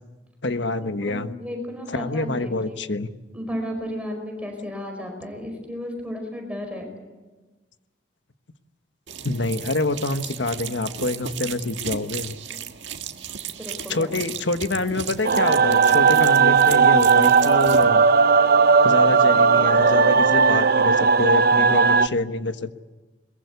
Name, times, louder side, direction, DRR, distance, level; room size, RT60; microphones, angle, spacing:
voice 1, 0.4-1.3 1.9-3.1 9.2-12.4 13.9-18.1 18.8-22.8, left 2 dB, 85° left, 9 dB, 1.3 m, -26 dB
voice 2, 1.0-2.8 3.3-6.9 13.3-14.1, equal, 5° right, 3 dB, 5.0 m, -34 dB
sound 1, 9.1-17.9, right 8 dB, 90° right, 1.7 m, -35 dB
sound 2, 15.2-22.1, right 5 dB, 55° right, 0.7 m, -16 dB
22.5 x 22.0 x 8.3 m, 1.2 s
head